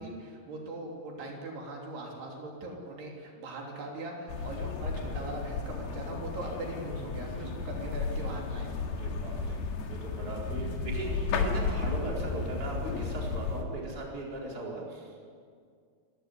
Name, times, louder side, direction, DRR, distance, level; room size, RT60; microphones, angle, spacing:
voice 1, 0.0-8.7, right 2 dB, 75° right, -1 dB, 5.3 m, -40 dB
sound 1, 4.3-13.6, left 4 dB, 70° left, 4.0 m, -33 dB
voice 2, 9.0-9.6 9.9-15.3, right 2 dB, 20° right, -3 dB, 4.6 m, -39 dB
27.5 x 15.0 x 10.0 m, 2.1 s
omnidirectional pair, 4.8 m